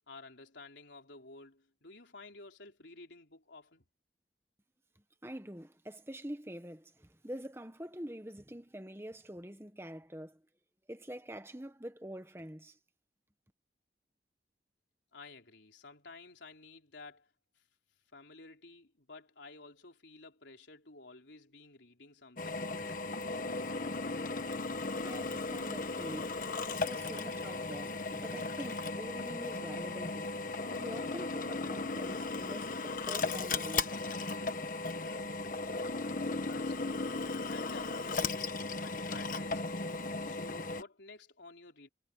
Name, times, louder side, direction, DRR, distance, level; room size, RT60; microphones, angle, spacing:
voice 1, 0.0-3.8 15.1-17.6 18.1-23.6 36.5-37.1 37.5-41.9, left 3 dB, 80° left, 3.7 m, -53 dB
voice 2, 5.2-10.4 10.9-12.8 25.0-26.3 26.8-30.4 30.7-34.0, equal, 15° right, 1.4 m, -45 dB
Drill, 22.4-40.8, left 3 dB, 45° left, 1.3 m, -36 dB
head